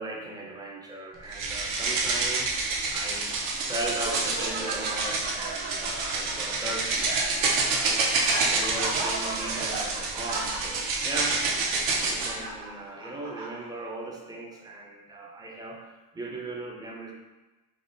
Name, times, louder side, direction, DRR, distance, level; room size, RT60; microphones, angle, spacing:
voice 1, 0.0-2.5 2.9-3.4 3.6-8.1 8.4-11.4 12.0-17.1, right 2 dB, 10° right, -1 dB, 0.3 m, -37 dB
sound 1, 1.3-12.3, right 3 dB, 70° right, 0.7 m, -28 dB
Laughter, 3.4-13.9, right 2 dB, 50° right, 0.9 m, -38 dB
3.4 x 2.1 x 2.6 m, 1.1 s
cardioid pair, 100°, 47 cm